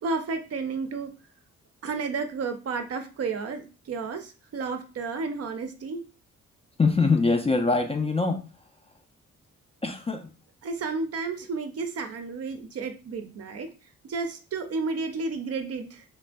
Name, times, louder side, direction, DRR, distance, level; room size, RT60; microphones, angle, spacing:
voice 1, 0.0-1.1 1.8-6.0 10.6-13.7 14.0-16.0, right 4 dB, 45° right, 7 dB, 0.5 m, -32 dB
voice 2, 6.8-8.4 9.8-10.3, left 3 dB, 15° left, 5 dB, 0.4 m, -23 dB
3.1 x 2.4 x 2.2 m, 0.33 s
hypercardioid pair, 40°, 35 cm